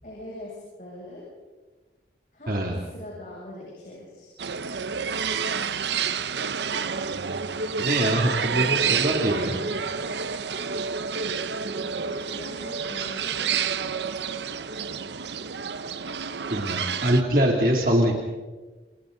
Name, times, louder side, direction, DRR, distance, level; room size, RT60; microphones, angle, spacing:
voice 1, 0.0-1.2 2.3-4.3 11.8-13.5, left 1 dB, 45° left, -5 dB, 7.5 m, -41 dB
voice 2, 2.5-2.8 7.1-7.4 7.8-9.6 16.5-18.1, right 1 dB, 50° right, 0 dB, 3.0 m, -23 dB
sound 1, 4.4-17.2, right 6 dB, 75° right, 0.9 m, -29 dB
29.0 x 29.0 x 4.0 m, 1.2 s
head